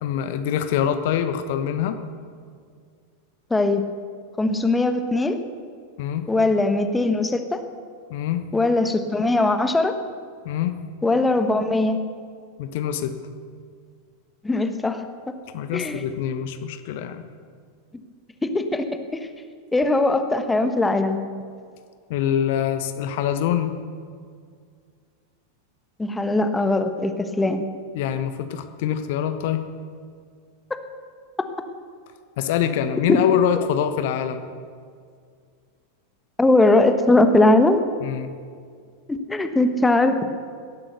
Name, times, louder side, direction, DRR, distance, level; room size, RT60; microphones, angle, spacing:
voice 1, 0.0-2.0 6.0-6.2 8.1-8.4 10.4-10.7 12.6-13.1 15.5-17.2 22.1-23.7 27.9-29.6 32.4-34.4 38.0-38.3, left 9 dB, 50° left, 9 dB, 1.1 m, -24 dB
voice 2, 3.5-3.8 4.4-5.4 6.3-7.6 8.5-9.9 11.0-12.0 14.4-15.0 15.7-16.0 18.4-18.8 19.7-21.2 26.0-27.1 27.4-27.6 30.7-30.8 33.1-33.2 36.4-37.8 39.1-40.2, left 2 dB, 10° left, 8 dB, 1.2 m, -20 dB
18.0 x 11.5 x 6.8 m, 2.1 s
figure-of-eight pair, 90°, 0 cm